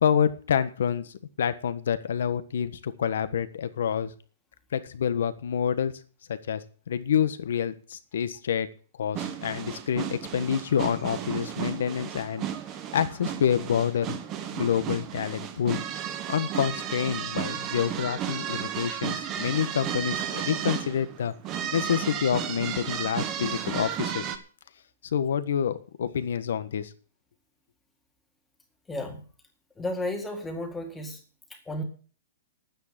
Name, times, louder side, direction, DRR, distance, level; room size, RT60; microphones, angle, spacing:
voice 1, 0.0-4.1 4.7-5.9 6.3-8.7 9.0-12.5 12.9-14.2 14.5-15.8 16.3-21.3 21.7-24.3 25.1-26.9, left 8 dB, 70° left, 13 dB, 1.4 m, -27 dB
sound 1, 9.1-24.4, right 9 dB, 20° right, 1.2 m, -33 dB
voice 2, 28.9-29.2 29.8-31.2 31.5-31.8, left 1 dB, 5° left, 4 dB, 2.0 m, -33 dB
11.0 x 9.5 x 7.5 m, 0.40 s
hypercardioid pair, 170°, 0 cm